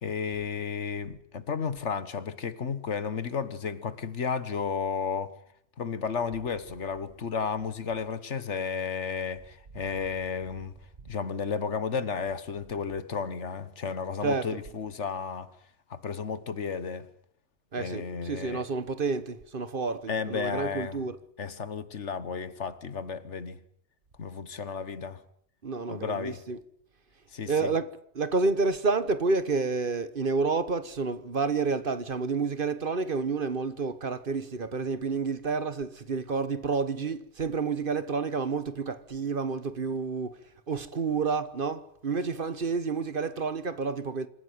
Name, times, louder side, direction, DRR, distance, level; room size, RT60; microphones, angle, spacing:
voice 1, 0.0-5.3 5.8-10.7 11.1-15.5 15.9-17.1 17.8-18.6 20.1-21.0 21.4-23.6 24.2-25.2 25.9-26.4 27.3-27.7, left 6 dB, 80° left, 1.7 m, -33 dB
voice 2, 14.2-14.6 17.7-21.2 25.6-26.6 27.5-40.4 40.7-44.3, right 4 dB, 50° right, 1.4 m, -29 dB
27.0 x 15.0 x 9.5 m
omnidirectional pair, 1.2 m